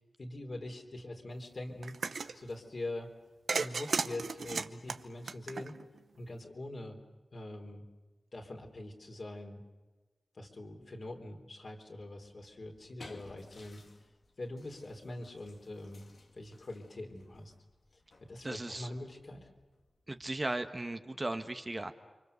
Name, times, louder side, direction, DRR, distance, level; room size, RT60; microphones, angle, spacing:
voice 1, 0.2-3.1 3.5-5.8 6.2-7.0 7.3-7.8 8.3-9.6 10.3-13.8 14.4-16.1 16.3-17.5 18.3-19.5, left 1 dB, 60° left, 2 dB, 3.7 m, -43 dB
sound 1, 1.8-2.3 3.5-6.0, right 4 dB, 80° right, 0.9 m, -35 dB
sound 2, 12.5-20.6, left 3 dB, 75° left, 2.4 m, -58 dB
voice 2, 18.4-18.9 20.1-21.9, right 2 dB, 30° right, 7 dB, 1.3 m, -36 dB
30.0 x 24.5 x 6.9 m, 1.2 s
cardioid pair, 50°, 0 cm